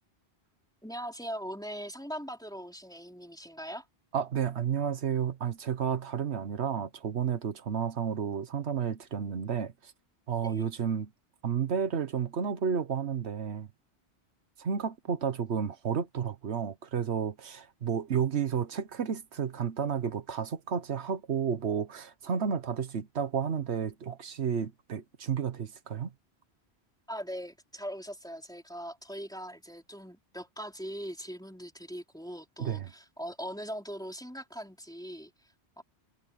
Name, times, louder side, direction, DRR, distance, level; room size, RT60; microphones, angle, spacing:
voice 1, 0.8-3.9 10.4-10.7 27.1-35.3 35.8-35.9, equal, 5° left, 3.6 m, -40 dB
voice 2, 4.1-9.9 10.3-11.1 11.4-13.7 14.6-26.1 32.6-32.9, right 7 dB, 85° right, 1.3 m, -31 dB
omnidirectional pair, 1.1 m